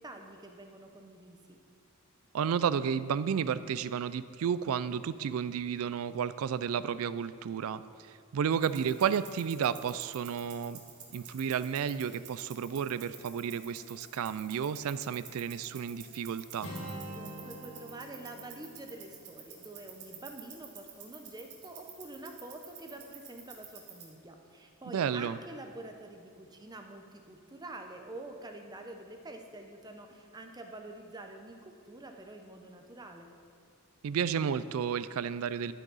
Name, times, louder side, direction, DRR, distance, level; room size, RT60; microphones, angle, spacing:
voice 1, 0.0-1.6 17.1-33.3, right 2 dB, 20° right, 4 dB, 0.7 m, -47 dB
voice 2, 2.3-7.8 8.3-10.8 11.1-16.7 24.9-25.4 34.0-35.7, right 7 dB, 65° right, 15 dB, 0.3 m, -32 dB
sound 1, 8.5-24.1, right 7 dB, 85° right, 1.8 m, -51 dB
Acoustic guitar, 16.6-20.5, equal, 60° left, 3.0 m, -46 dB
12.0 x 9.1 x 4.0 m, 2.3 s
head